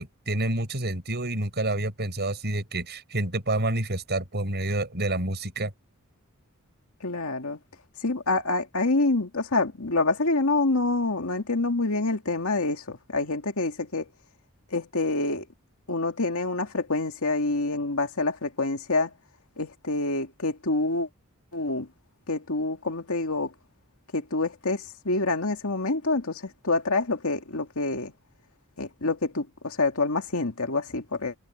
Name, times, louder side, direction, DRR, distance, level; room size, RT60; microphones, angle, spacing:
voice 1, 0.0-5.7, right 2 dB, 50° right, 6.9 m, -28 dB
voice 2, 7.0-7.6 8.0-14.1 14.7-15.4 15.9-19.1 19.6-21.1 21.5-21.9 22.3-23.5 24.1-28.1 28.8-31.3, left 3 dB, 70° left, 2.4 m, -27 dB
head